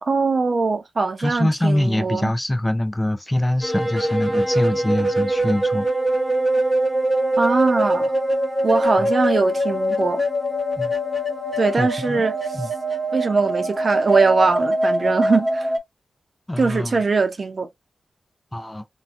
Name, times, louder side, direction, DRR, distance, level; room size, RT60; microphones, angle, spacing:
voice 1, 0.0-2.3 7.4-8.1 8.6-10.2 11.6-12.6 13.1-15.7 16.6-17.7, right 4 dB, 55° right, 0.6 m, -21 dB
voice 2, 1.2-5.9 10.8-10.9 11.8-12.2 12.5-12.7 16.5-17.0 18.5-18.8, left 1 dB, 20° left, 0.6 m, -23 dB
sound 1, 3.6-15.8, right 1 dB, 5° right, 1.1 m, -23 dB
2.8 x 2.3 x 2.6 m
supercardioid pair, 40°, 0 cm